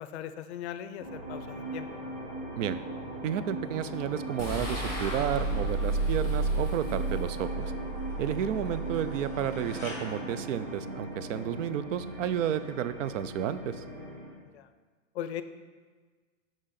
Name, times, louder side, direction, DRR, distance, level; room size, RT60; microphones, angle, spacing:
voice 1, 0.0-1.9 14.4-14.7 15.1-15.4, left 10 dB, 60° left, 11 dB, 0.5 m, -39 dB
sound 1, 1.0-14.3, right 1 dB, 60° right, 2.0 m, -39 dB
voice 2, 3.2-7.7 8.2-13.8, right 9 dB, 80° right, 13 dB, 0.5 m, -32 dB
sound 2, 4.4-9.7, right 2 dB, 10° left, 2.1 m, -32 dB
sound 3, 5.1-11.4, left 2 dB, 5° right, 0.3 m, -51 dB
6.3 x 5.0 x 4.1 m, 1.5 s
supercardioid pair, 175°, 38 cm